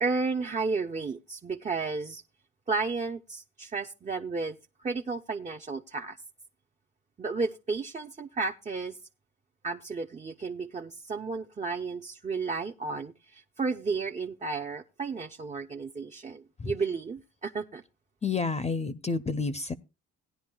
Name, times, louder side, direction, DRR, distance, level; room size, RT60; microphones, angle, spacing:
voice 1, 0.0-2.2 2.7-6.2 7.2-9.0 9.6-17.8, right 4 dB, 25° right, 0.6 m, -33 dB
voice 2, 18.2-19.7, left 4 dB, 20° left, 0.6 m, -30 dB
17.5 x 10.0 x 2.3 m
cardioid pair, 90°, 30 cm